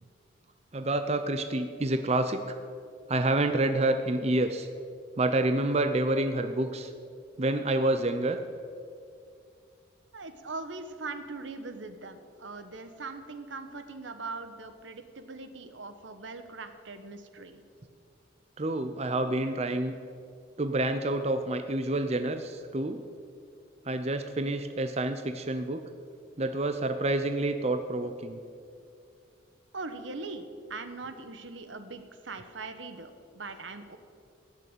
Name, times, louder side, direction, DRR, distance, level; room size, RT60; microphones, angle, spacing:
voice 1, 0.7-2.6 3.1-4.7 5.2-6.9 7.4-8.4 18.6-19.9 20.6-23.0 23.9-25.8 26.4-28.4, right 2 dB, 35° right, 8 dB, 0.6 m, -28 dB
voice 2, 10.1-17.6 29.7-34.0, right 3 dB, 80° right, 9 dB, 1.2 m, -41 dB
17.0 x 6.7 x 9.0 m, 2.4 s
head